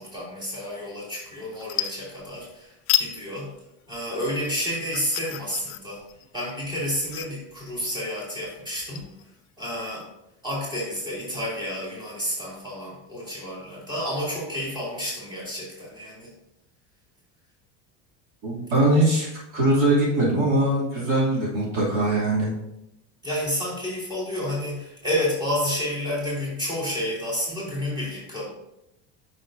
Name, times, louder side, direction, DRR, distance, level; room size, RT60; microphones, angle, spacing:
voice 1, 0.0-3.5 3.9-6.0 6.3-9.1 9.6-10.1 10.4-16.3 23.2-28.5, equal, 10° right, -6 dB, 2.8 m, -30 dB
sound 1, 1.0-1.2 1.5-2.5 2.9-3.1 3.5-10.0, left 13 dB, 40° left, 0.4 m, -32 dB
voice 2, 18.4-19.3 19.5-22.5, right 1 dB, 60° right, -5 dB, 2.8 m, -21 dB
8.9 x 6.4 x 2.7 m, 0.85 s
cardioid pair, 150°, 36 cm